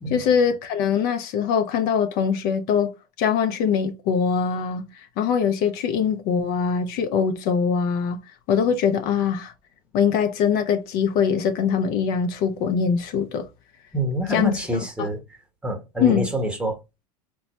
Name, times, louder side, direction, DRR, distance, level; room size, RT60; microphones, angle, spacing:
voice 1, 0.1-8.2 8.5-9.5 9.9-13.5 14.3-14.5 15.0-15.1 16.0-16.2, left 7 dB, 50° left, 0.6 m, -22 dB
voice 2, 13.9-15.2 15.6-16.8, equal, 5° right, 1.1 m, -26 dB
3.9 x 2.2 x 3.0 m
hypercardioid pair, 90°, 19 cm